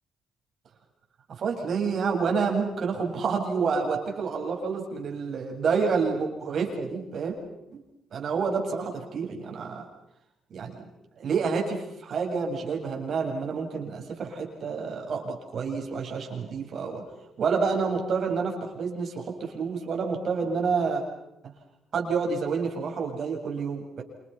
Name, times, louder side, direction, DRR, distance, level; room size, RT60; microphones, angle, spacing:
voice 1, 1.3-7.4 7.7-7.8 8.1-9.8 10.5-10.8 11.2-17.0 17.4-21.0 21.4-21.5 21.9-24.0, right 5 dB, 55° right, 2 dB, 7.8 m, -28 dB
28.0 x 27.0 x 6.0 m, 0.83 s
cardioid pair, 90°, 0 cm